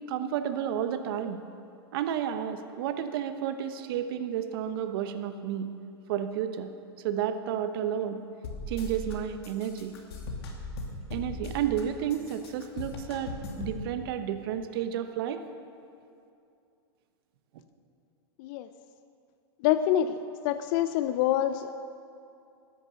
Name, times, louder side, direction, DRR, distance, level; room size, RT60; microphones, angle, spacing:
voice 1, 0.1-1.4 1.9-5.7 6.1-6.7 7.0-8.2 8.7-9.9 11.1-15.4, right 9 dB, 60° right, 9 dB, 1.0 m, -31 dB
sound 1, 8.4-9.1 9.4-11.8 12.1-13.8, left 1 dB, 70° left, 2.6 m, -38 dB
voice 2, 19.6-20.2 20.4-21.8, left 11 dB, 50° left, 11 dB, 0.5 m, -26 dB
13.5 x 10.5 x 7.0 m, 2.6 s
hypercardioid pair, 105°, 14 cm